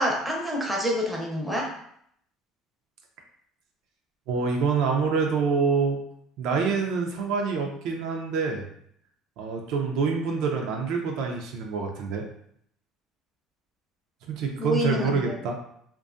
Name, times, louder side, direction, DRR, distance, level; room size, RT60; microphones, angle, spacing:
voice 1, 0.0-1.7 14.6-15.2, equal, 5° right, -2 dB, 0.6 m, -27 dB
voice 2, 4.3-6.0 6.4-8.6 9.4-12.2 14.3-15.5, right 5 dB, 70° right, 2 dB, 0.4 m, -26 dB
2.5 x 2.2 x 2.5 m, 0.69 s
cardioid pair, 120°, 0 cm